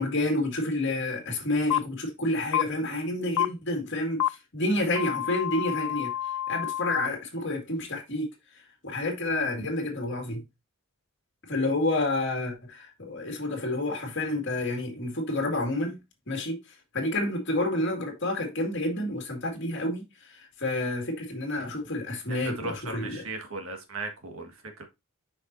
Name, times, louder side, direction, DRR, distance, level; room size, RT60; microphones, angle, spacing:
voice 1, 0.0-6.1 6.5-8.3 8.8-10.4 11.5-16.0 16.3-16.6 16.9-23.2, left 1 dB, 55° left, 2.1 m, -29 dB
sound 1, 1.7-1.8 2.5-2.6 3.4-3.5 4.2-4.3 5.0-7.1, left 12 dB, 80° left, 0.3 m, -28 dB
voice 2, 22.3-24.8, right 3 dB, 75° right, 1.8 m, -37 dB
7.1 x 5.6 x 2.7 m
head